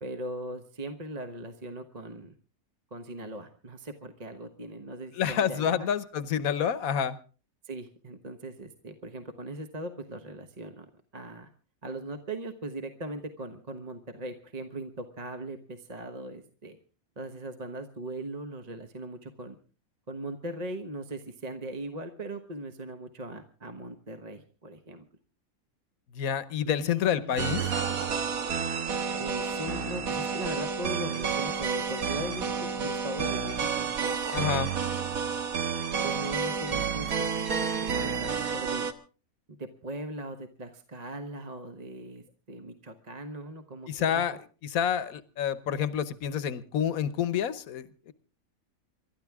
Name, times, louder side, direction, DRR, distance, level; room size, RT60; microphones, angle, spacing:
voice 1, 0.0-2.3 2.9-5.9 7.6-10.8 11.1-11.5 11.8-16.8 17.2-19.6 20.1-25.0 26.6-27.4 29.2-34.6 36.0-37.1 37.3-38.9 39.5-44.4, right 1 dB, 30° right, 7 dB, 1.3 m, -39 dB
voice 2, 5.1-7.2 26.1-27.7 34.3-34.7 43.9-44.4 44.6-48.1, left 8 dB, 80° left, 15 dB, 1.4 m, -28 dB
sound 1, 27.4-38.9, right 6 dB, 80° right, 1.7 m, -30 dB
28.0 x 12.5 x 3.6 m, 0.36 s
omnidirectional pair, 1.5 m